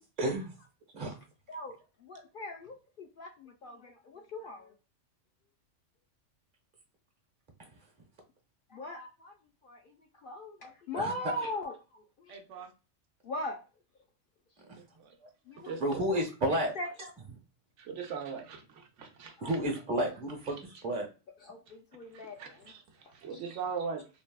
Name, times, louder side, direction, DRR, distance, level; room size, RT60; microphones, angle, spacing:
voice 1, 0.2-0.5 0.9-1.2 10.9-11.1 15.8-16.7 19.4-20.6 20.8-21.1, right 1 dB, 45° right, 2 dB, 1.0 m, -30 dB
voice 2, 1.5-4.7 8.7-9.3 9.6-9.9 10.2-12.4 13.2-13.6 15.5-15.7 16.8-16.9 19.4-19.5 21.4-22.6 23.3-23.4, left 1 dB, 60° left, 1 dB, 0.6 m, -40 dB
voice 3, 12.3-12.7 14.8-15.1 15.6-15.8 17.8-19.6 22.1-22.8 23.1-24.0, right 5 dB, 75° right, 4 dB, 0.9 m, -40 dB
3.3 x 2.2 x 2.2 m, 0.32 s
omnidirectional pair, 1.3 m